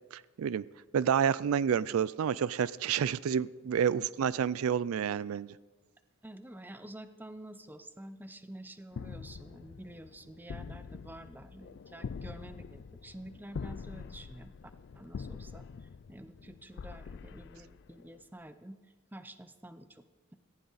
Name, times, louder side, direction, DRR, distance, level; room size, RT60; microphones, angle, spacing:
voice 1, 0.1-0.6 0.9-5.6, right 8 dB, 75° right, 19 dB, 0.4 m, -29 dB
voice 2, 6.2-14.5 14.9-18.8 19.1-20.0, right 1 dB, 10° right, 10 dB, 0.7 m, -49 dB
sound 1, 8.9-18.2, left 5 dB, 55° left, 0.4 m, -45 dB
18.0 x 15.5 x 4.1 m, 1.3 s
head